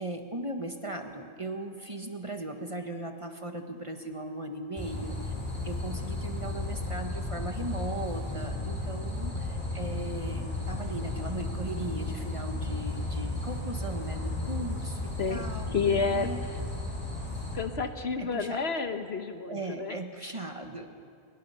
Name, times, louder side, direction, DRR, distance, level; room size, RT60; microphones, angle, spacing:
voice 1, 0.0-5.1 5.6-16.4 18.2-18.6 19.5-21.0, right 2 dB, 25° right, 4 dB, 1.3 m, -38 dB
sound 1, 4.8-17.6, left 2 dB, 10° left, 6.2 m, -34 dB
voice 2, 15.7-16.3 17.5-20.0, left 5 dB, 55° left, 7 dB, 1.2 m, -30 dB
24.0 x 21.0 x 5.7 m, 2.4 s
omnidirectional pair, 1.4 m